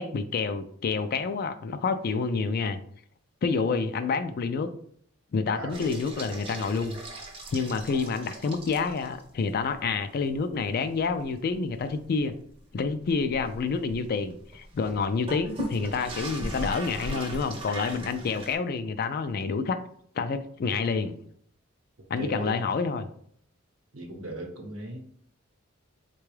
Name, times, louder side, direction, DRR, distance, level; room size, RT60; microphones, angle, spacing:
voice 1, 0.0-2.8 3.4-4.7 5.3-7.0 7.5-12.3 12.7-19.8 20.2-21.2 22.1-23.1, left 4 dB, 45° left, 10 dB, 0.3 m, -28 dB
sound 1, 5.7-9.3 9.7-9.8 10.3-10.4 10.9-18.6, right 1 dB, 25° right, 0.6 m, -39 dB
voice 2, 22.2-22.6 23.9-25.0, right 1 dB, 70° right, 2 dB, 0.8 m, -37 dB
3.8 x 2.3 x 3.1 m, 0.62 s
head